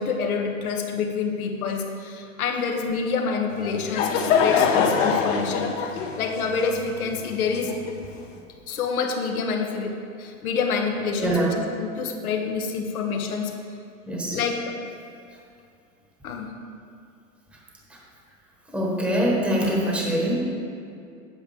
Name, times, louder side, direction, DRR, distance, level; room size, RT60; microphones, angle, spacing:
voice 1, 0.0-5.9 6.2-7.7 8.7-13.5 14.3-14.8 16.2-16.5, left 5 dB, 85° left, 3 dB, 1.1 m, -27 dB
Laughter / Crowd, 3.5-8.2, left 6 dB, 60° left, 1.0 m, -24 dB
voice 2, 11.2-11.5 14.1-14.4 18.7-20.3, right 1 dB, 5° right, -3 dB, 1.1 m, -23 dB
8.2 x 7.9 x 3.4 m, 2.4 s
hypercardioid pair, 120°, 42 cm